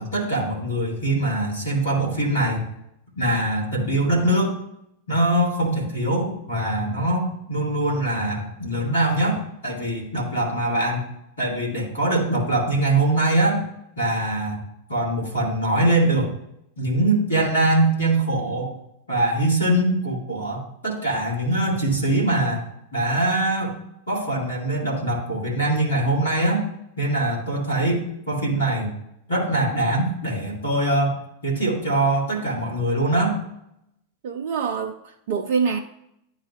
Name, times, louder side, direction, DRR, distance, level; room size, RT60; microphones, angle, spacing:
voice 1, 0.0-2.6 3.2-4.6 5.1-11.0 11.4-13.6 14.0-14.6 14.9-16.3 16.8-18.8 19.1-22.6 22.9-23.8 24.1-26.6 27.0-28.9 29.3-31.2 31.4-33.4, right 1 dB, 75° left, -4 dB, 2.1 m, -22 dB
voice 2, 34.2-35.8, right 6 dB, 50° right, 4 dB, 0.5 m, -25 dB
10.5 x 4.0 x 2.4 m, 0.79 s
figure-of-eight pair, 90°, 0 cm